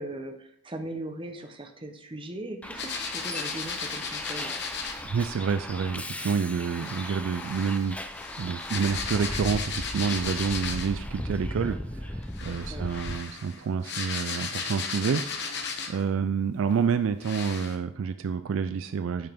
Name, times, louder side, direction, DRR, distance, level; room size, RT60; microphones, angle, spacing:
voice 1, 0.0-4.5 12.7-12.9, right 1 dB, 25° right, 5 dB, 0.8 m, -39 dB
Bus, 2.6-13.2, left 1 dB, 5° left, 0.5 m, -37 dB
sound 1, 2.8-5.0 6.7-11.0 12.2-16.1 16.7-16.8 17.2-17.8, left 5 dB, 50° left, 1.0 m, -35 dB
voice 2, 5.1-8.0 8.4-19.3, right 6 dB, 60° right, 11 dB, 0.3 m, -28 dB
8.8 x 5.6 x 3.5 m, 0.68 s
head